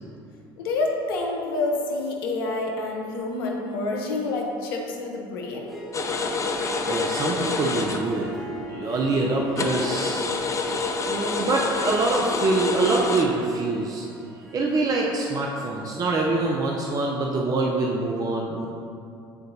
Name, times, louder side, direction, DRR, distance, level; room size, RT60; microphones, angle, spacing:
voice 1, 0.6-5.8, left 2 dB, 80° left, 0 dB, 0.8 m, -28 dB
Harp, 5.5-16.7, right 1 dB, ahead, 1.1 m, -40 dB
sound 1, 5.9-8.3 8.6-8.7 9.2-9.3 9.5-13.2, left 4 dB, 25° left, 0.6 m, -27 dB
voice 2, 6.9-8.3 8.7-10.2 11.0-14.1 14.5-18.7, right 3 dB, 30° right, -1 dB, 0.6 m, -25 dB
9.3 x 3.8 x 2.7 m, 2.5 s
hypercardioid pair, 75°, 12 cm